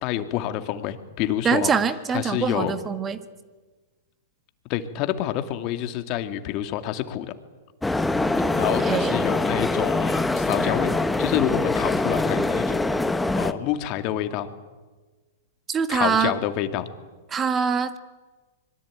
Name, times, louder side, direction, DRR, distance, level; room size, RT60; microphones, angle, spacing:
voice 1, 0.0-1.7 2.1-2.8 4.7-7.3 8.5-10.9 11.2-12.9 13.3-14.5 15.9-16.9, left 12 dB, 45° left, 9 dB, 2.3 m, -27 dB
voice 2, 1.4-3.2 8.7-9.1 15.7-16.3 17.3-18.0, right 6 dB, 20° right, 11 dB, 1.6 m, -24 dB
sound 1, 7.8-13.5, left 2 dB, 5° left, 1.2 m, -24 dB
25.0 x 22.5 x 9.0 m, 1.3 s
hypercardioid pair, 110°, 0 cm